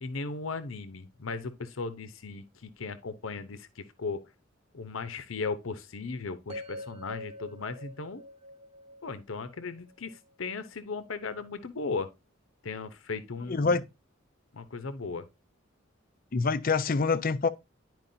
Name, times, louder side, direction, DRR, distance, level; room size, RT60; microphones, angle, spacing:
voice 1, 0.0-4.2 4.7-8.2 9.0-12.1 12.6-13.8 14.5-15.3, left 4 dB, 85° left, 0.8 m, -37 dB
sound 1, 6.5-10.6, equal, 30° right, 1.0 m, -45 dB
voice 2, 13.5-13.9 16.3-17.5, left 4 dB, 45° left, 0.6 m, -26 dB
11.0 x 4.7 x 2.7 m
head